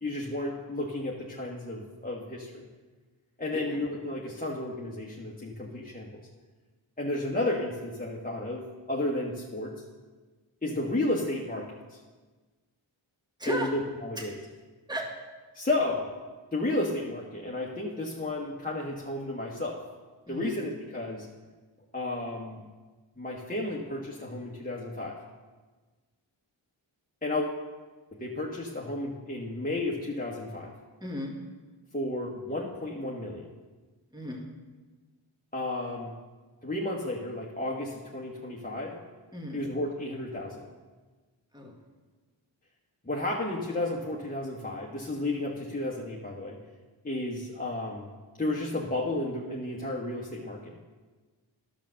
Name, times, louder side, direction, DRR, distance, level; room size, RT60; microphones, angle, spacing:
voice 1, 0.0-2.7 3.4-6.2 7.0-9.8 10.6-12.0 13.4-14.4 15.5-16.1 16.5-19.8 20.3-21.3 21.9-22.6 23.2-25.2 27.2-27.5 28.2-30.7 31.9-33.5 35.5-36.2 36.6-39.0 39.5-40.6 43.0-46.6 47.0-48.1 48.4-50.8, left 2 dB, 15° left, -4 dB, 1.4 m, -32 dB
voice 2, 31.0-31.3 34.1-34.4 39.3-39.6 41.5-41.7, left 1 dB, 10° right, 0 dB, 2.0 m, -34 dB
10.5 x 7.1 x 6.4 m, 1.3 s
cardioid pair, 45°, 49 cm